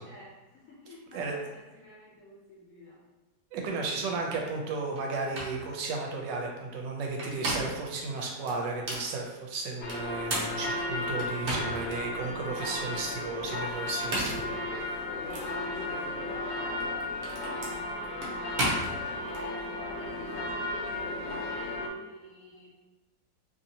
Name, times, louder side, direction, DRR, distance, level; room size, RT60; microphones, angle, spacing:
voice 1, 0.0-3.0 12.3-12.8 15.3-15.8 16.2-22.7, equal, 60° left, -6 dB, 0.9 m, -49 dB
voice 2, 3.5-14.4, right 3 dB, 75° right, 0 dB, 1.2 m, -34 dB
sound 1, 4.9-5.0 5.3-5.6 7.0-7.9 8.5-9.1 9.9-12.0 12.5-12.6 13.8-14.5 15.3-15.5 16.7-19.4, right 1 dB, 60° right, 0.7 m, -34 dB
sound 2, 9.8-21.9, left 2 dB, 80° left, 1.2 m, -34 dB
3.0 x 2.7 x 2.7 m, 1.2 s
omnidirectional pair, 2.0 m